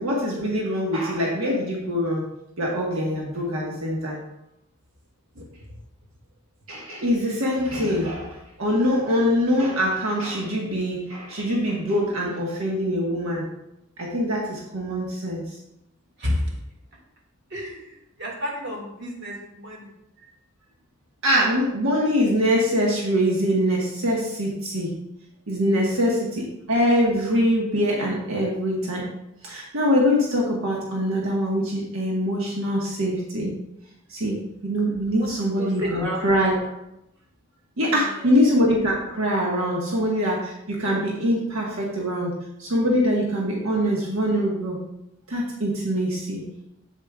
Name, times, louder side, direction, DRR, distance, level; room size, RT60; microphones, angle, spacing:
voice 1, 0.0-2.2 2.6-4.2 6.7-13.4 14.0-15.4 21.2-24.9 25.5-29.0 29.4-33.5 34.1-34.4 34.6-36.5 37.8-42.3 42.6-44.8 45.3-46.4, equal, 85° right, -3 dB, 1.4 m, -23 dB
voice 2, 16.2-16.6 17.5-19.9 25.9-26.0 35.2-35.3 35.6-36.2 36.6-36.7 37.9-38.4, equal, 60° right, -2 dB, 2.0 m, -31 dB
8.4 x 8.0 x 2.3 m, 0.84 s
head